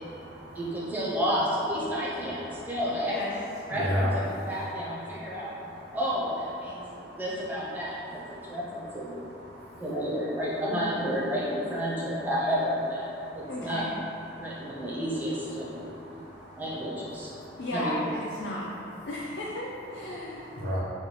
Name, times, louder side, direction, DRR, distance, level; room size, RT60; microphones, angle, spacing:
voice 1, 0.5-3.4 3.7-5.5 5.9-9.2 9.8-13.1 13.3-13.8 14.4-15.8 16.5-17.3 17.7-17.9, equal, 10° right, -7 dB, 0.5 m, -31 dB
voice 2, 3.7-4.1 4.4-4.5 5.1-6.0 6.7-7.2 8.4-8.6 9.1-9.8 13.2-13.5 14.3-14.8 15.7-16.6 17.4-17.6 20.6-20.8, equal, 60° right, -7 dB, 0.7 m, -36 dB
voice 3, 13.5-13.9 17.6-18.7 19.1-20.5, left 1 dB, 65° left, -4 dB, 0.4 m, -34 dB
4.2 x 2.2 x 3.1 m, 2.8 s
head